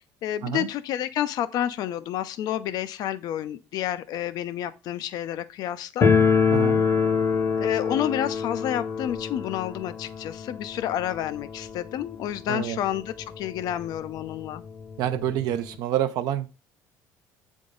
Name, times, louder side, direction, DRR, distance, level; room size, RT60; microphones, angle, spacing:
voice 1, 0.2-6.1 7.6-14.6, left 11 dB, 65° left, 0.5 m, -29 dB
sound 1, 6.0-12.7 13.0-13.1 13.3-13.4 14.2-14.3 14.6-15.8, left 5 dB, 35° left, 0.9 m, -25 dB
voice 2, 6.5-6.8 12.5-12.8 15.0-16.5, right 11 dB, 70° right, 0.6 m, -27 dB
7.7 x 3.6 x 3.8 m
supercardioid pair, 95°, 7 cm